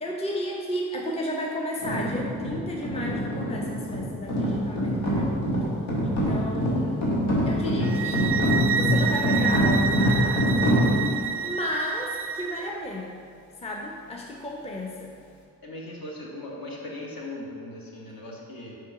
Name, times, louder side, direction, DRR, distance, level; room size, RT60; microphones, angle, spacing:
voice 1, 0.0-5.3 6.0-7.2 7.5-8.4 8.7-10.8 11.4-13.2 13.6-15.1, left 1 dB, 15° left, -1 dB, 0.7 m, -33 dB
sound 1, 1.8-11.3, equal, 85° left, 1.2 m, -25 dB
sound 2, 7.8-12.7, right 7 dB, 30° right, 0.4 m, -29 dB
voice 2, 15.6-18.8, left 1 dB, 50° left, -3 dB, 1.5 m, -38 dB
4.6 x 4.5 x 4.7 m, 2.3 s
supercardioid pair, 50°, 46 cm